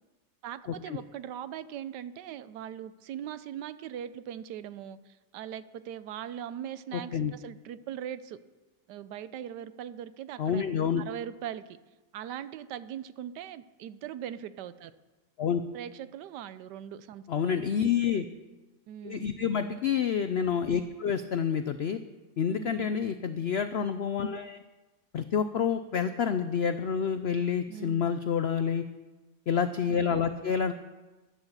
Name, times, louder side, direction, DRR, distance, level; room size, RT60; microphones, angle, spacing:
voice 1, 0.4-8.4 8.9-10.6 11.0-11.8 12.1-14.9 15.7-17.7 18.9-19.3 22.5-23.0 27.7-28.1, right 10 dB, 90° right, 14 dB, 1.3 m, -40 dB
voice 2, 6.9-7.3 10.4-11.0 15.4-15.6 17.3-18.2 19.0-22.0 22.4-24.6 25.1-28.8 29.5-30.7, left 7 dB, 80° left, 10 dB, 0.5 m, -28 dB
10.5 x 10.5 x 7.1 m, 1.2 s
omnidirectional pair, 1.8 m